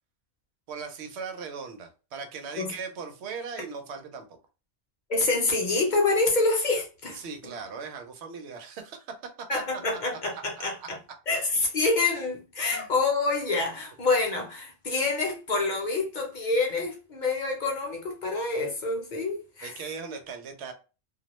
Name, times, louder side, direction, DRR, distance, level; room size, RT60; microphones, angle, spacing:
voice 1, 0.7-4.3 7.1-9.1 10.3-10.4 10.8-10.9 12.7-12.9 19.6-20.7, right 5 dB, 80° right, 0.8 m, -38 dB
voice 2, 5.1-7.5 9.5-11.0 11.3-19.7, left 3 dB, 50° left, 0.7 m, -27 dB
2.3 x 2.1 x 2.9 m
omnidirectional pair, 1.1 m